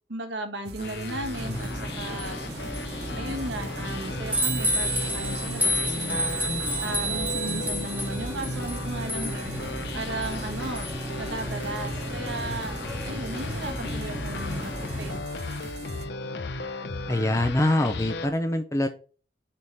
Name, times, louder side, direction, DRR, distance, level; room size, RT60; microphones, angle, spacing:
voice 1, 0.1-1.7 2.0-2.9 3.2-9.5 9.9-10.9 11.2-15.2, right 2 dB, 80° right, 5 dB, 1.5 m, -36 dB
sound 1, 0.6-16.1, right 3 dB, 60° right, 0.9 m, -42 dB
sound 2, 0.8-18.3, left 3 dB, 65° left, 0.7 m, -36 dB
sound 3, 1.4-15.2, equal, 10° right, 1.2 m, -31 dB
voice 2, 17.1-18.9, left 1 dB, 15° left, 6 dB, 0.5 m, -24 dB
6.7 x 3.7 x 5.9 m, 0.37 s
head